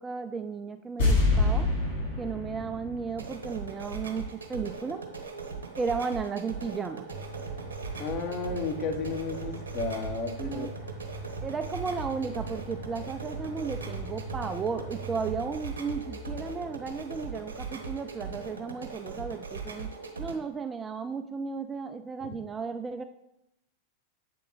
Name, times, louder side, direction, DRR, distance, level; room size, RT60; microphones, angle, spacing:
voice 1, 0.0-1.7 2.2-5.1 5.8-7.1 10.4-10.7 11.4-19.9 20.2-23.0, right 5 dB, 20° right, 8 dB, 0.3 m, -34 dB
sound 1, 1.0-4.2 4.5-4.6, left 2 dB, 60° left, 2.1 m, -27 dB
sound 2, 3.1-20.3, right 5 dB, 70° right, 0.9 m, -40 dB
sound 3, 7.1-18.6, right 1 dB, 75° left, 1.5 m, -43 dB
voice 2, 8.0-10.8 22.2-22.3, left 4 dB, 40° left, 4 dB, 1.0 m, -33 dB
7.7 x 3.7 x 3.9 m, 0.85 s
figure-of-eight pair, 90°, 0 cm